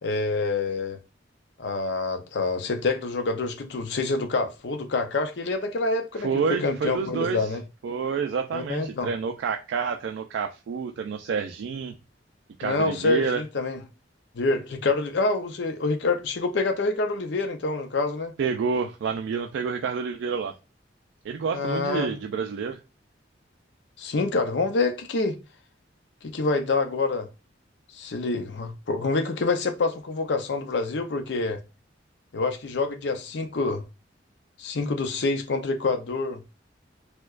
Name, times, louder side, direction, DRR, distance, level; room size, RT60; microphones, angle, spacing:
voice 1, 0.0-1.0 1.6-7.6 8.5-9.1 12.6-13.8 14.4-18.3 21.5-22.1 24.0-25.4 26.2-27.3 27.9-31.6 32.3-33.8 34.6-36.4, left 3 dB, 65° left, 0.5 m, -27 dB
voice 2, 6.2-7.5 7.8-11.9 12.6-13.4 18.4-20.5 21.2-22.8, right 5 dB, 75° right, 0.3 m, -28 dB
4.5 x 2.2 x 2.4 m
head